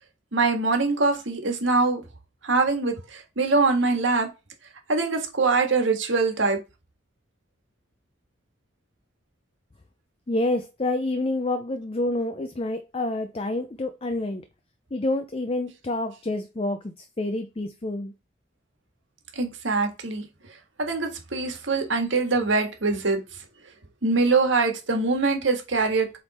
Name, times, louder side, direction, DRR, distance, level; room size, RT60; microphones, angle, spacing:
voice 1, 0.3-2.0 2.4-4.3 4.9-6.6 19.3-20.2 20.8-23.2 24.0-26.2, right 3 dB, 80° right, 1.6 m, -23 dB
voice 2, 10.3-14.4 14.9-16.8 17.2-18.1, left 2 dB, 30° left, 0.5 m, -28 dB
7.7 x 3.5 x 4.2 m
head